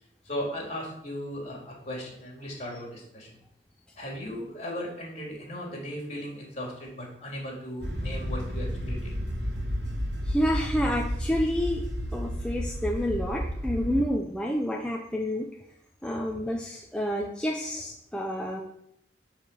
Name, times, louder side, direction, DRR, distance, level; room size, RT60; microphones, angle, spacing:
voice 1, 0.3-3.3 4.0-9.1 16.3-16.4, equal, 40° left, -1 dB, 3.6 m, -37 dB
sound 1, 7.8-14.0, equal, 70° right, 2.6 m, -32 dB
voice 2, 10.3-11.8 12.1-15.5 16.0-18.6, equal, 5° left, 0 dB, 0.7 m, -29 dB
10.5 x 5.0 x 7.2 m, 0.77 s
head